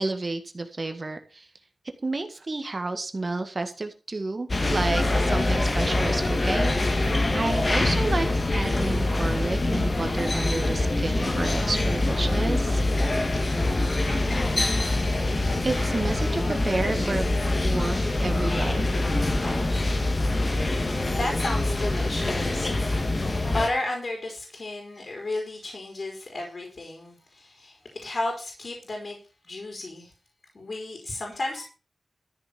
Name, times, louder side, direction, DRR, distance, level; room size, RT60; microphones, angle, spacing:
voice 1, 0.0-1.5 2.0-12.8 15.6-17.2 17.6-18.8, right 3 dB, 40° right, 7 dB, 1.7 m, -30 dB
sound 1, 4.5-23.7, left 2 dB, 40° left, 2.2 m, -24 dB
voice 2, 20.1-22.8 23.2-29.2 29.4-30.1 30.5-31.6, left 2 dB, 55° left, 2 dB, 4.6 m, -33 dB
13.5 x 7.1 x 6.9 m, 0.35 s
wide cardioid pair, 100°, 0 cm